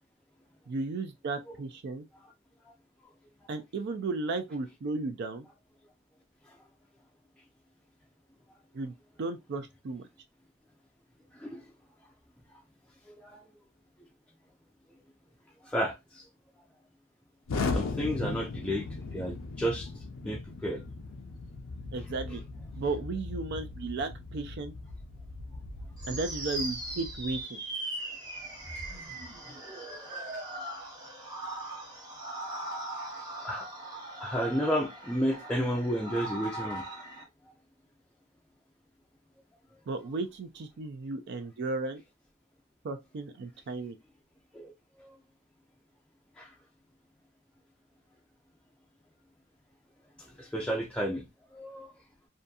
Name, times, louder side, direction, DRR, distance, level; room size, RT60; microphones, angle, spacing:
voice 1, 0.7-2.1 3.5-5.5 8.7-10.0 21.9-22.4 22.8-24.7 26.1-27.6 39.9-42.0 42.8-44.0, right 3 dB, 55° right, 0.4 m, -34 dB
voice 2, 11.3-11.6 13.2-13.5 15.6-16.2 17.7-20.8 33.4-33.7 34.2-36.8 44.5-44.7 45.0-45.2 46.4-46.5 50.2-51.3 51.5-51.9, equal, 5° left, 0.4 m, -32 dB
Explosion, 17.5-27.4, left 3 dB, 85° left, 0.5 m, -38 dB
sound 1, 26.0-37.2, right 1 dB, 20° right, 0.9 m, -39 dB
2.7 x 2.6 x 2.3 m
head